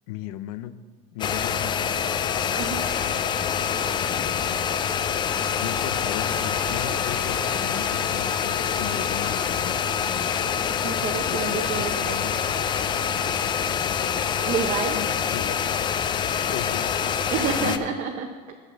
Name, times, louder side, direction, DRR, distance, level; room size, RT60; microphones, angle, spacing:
voice 1, 0.1-0.9 1.1-2.2 4.0-12.4 14.0-14.4 14.9-15.6 16.5-16.9 17.6-18.0, left 12 dB, 75° left, 13 dB, 0.6 m, -37 dB
sound 1, 1.2-17.8, left 7 dB, 25° left, 0.4 m, -26 dB
sound 2, 1.2-13.4, right 5 dB, 55° right, 1.4 m, -47 dB
voice 2, 10.8-12.3 14.5-15.2 17.3-18.3, right 7 dB, 40° right, 2 dB, 0.7 m, -29 dB
8.0 x 5.8 x 7.1 m, 1.5 s
supercardioid pair, 140°, 19 cm